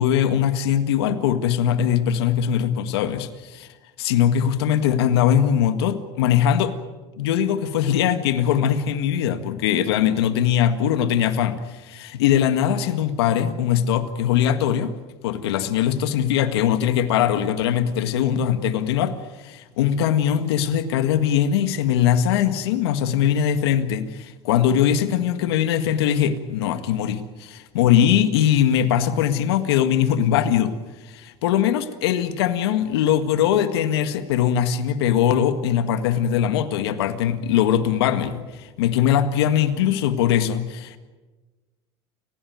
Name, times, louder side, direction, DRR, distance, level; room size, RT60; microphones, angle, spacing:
voice 1, 0.0-3.7 4.0-6.7 7.2-14.9 15.2-30.7 31.1-41.0, left 9 dB, 90° left, 10 dB, 1.8 m, -21 dB
29.5 x 17.0 x 9.4 m, 1.3 s
supercardioid pair, 100°, 13 cm